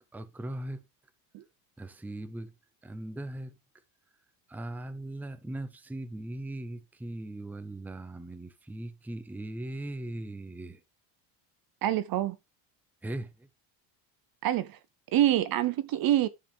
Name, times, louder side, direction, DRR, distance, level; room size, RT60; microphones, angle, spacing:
voice 1, 0.1-0.8 1.8-2.5 2.8-3.6 4.5-10.8 13.0-13.5, right 1 dB, 5° right, 0.7 m, -39 dB
voice 2, 11.8-12.4 14.4-14.8 15.1-16.3, right 12 dB, 45° right, 0.7 m, -26 dB
10.5 x 6.6 x 3.4 m
cardioid pair, 115°, 49 cm